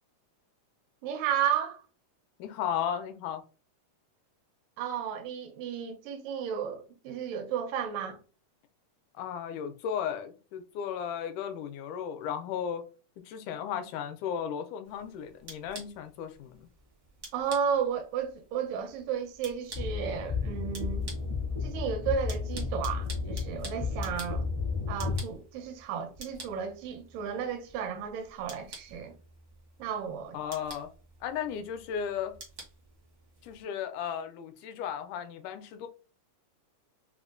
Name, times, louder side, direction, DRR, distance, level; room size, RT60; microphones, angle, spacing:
voice 1, 1.0-1.8 4.8-8.2 17.3-21.1 21.6-24.5 24.9-29.1 29.8-30.4, right 8 dB, 85° right, 2.4 m, -33 dB
voice 2, 2.4-3.4 9.1-12.8 13.3-16.7 30.3-30.9 31.2-32.4 33.4-35.9, left 8 dB, 80° left, 1.9 m, -35 dB
sound 1, 14.8-33.6, right 3 dB, 70° right, 0.9 m, -50 dB
sound 2, 19.7-25.2, left 4 dB, 45° left, 0.5 m, -33 dB
5.4 x 2.1 x 2.5 m
omnidirectional pair, 3.8 m